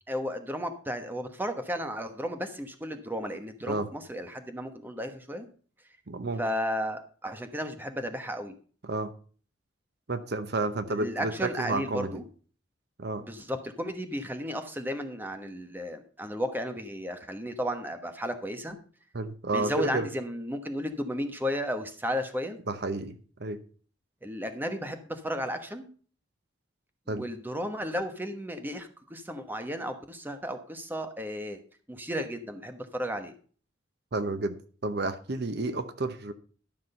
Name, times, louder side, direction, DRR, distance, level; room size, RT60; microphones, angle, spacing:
voice 1, 0.1-5.5 6.4-8.5 10.9-12.2 13.2-18.8 19.5-22.6 24.2-25.9 27.1-31.6 31.9-33.3, equal, 10° right, 7 dB, 1.1 m, -34 dB
voice 2, 6.1-6.4 8.8-9.1 10.1-12.2 13.0-13.2 19.1-20.1 22.7-23.6 27.1-27.2 34.1-34.6 34.8-36.3, right 2 dB, 55° right, 10 dB, 0.8 m, -31 dB
12.0 x 6.1 x 5.4 m, 0.42 s
head